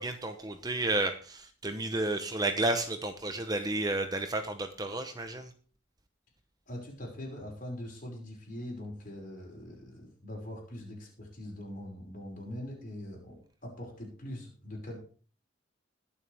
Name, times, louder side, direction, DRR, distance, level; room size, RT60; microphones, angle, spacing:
voice 1, 0.0-5.5, right 2 dB, 20° right, 7 dB, 0.9 m, -32 dB
voice 2, 6.7-15.0, left 1 dB, 45° left, -1 dB, 5.6 m, -42 dB
21.0 x 7.2 x 3.5 m, 0.40 s
head